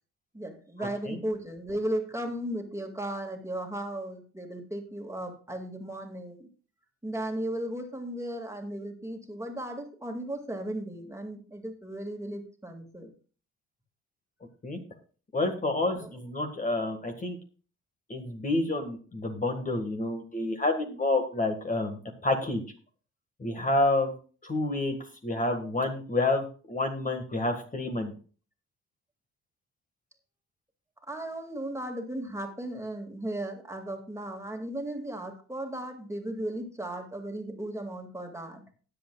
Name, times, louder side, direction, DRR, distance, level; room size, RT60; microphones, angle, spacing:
voice 1, 0.3-6.5 7.0-13.1 15.9-16.1 31.1-38.6, right 1 dB, 10° right, 3 dB, 2.3 m, -36 dB
voice 2, 15.3-17.4 18.1-22.6 23.4-24.1 24.4-25.0 25.2-28.1, left 2 dB, 25° left, 3 dB, 1.8 m, -29 dB
19.0 x 7.8 x 2.4 m, 0.39 s
cardioid pair, 90°, 30 cm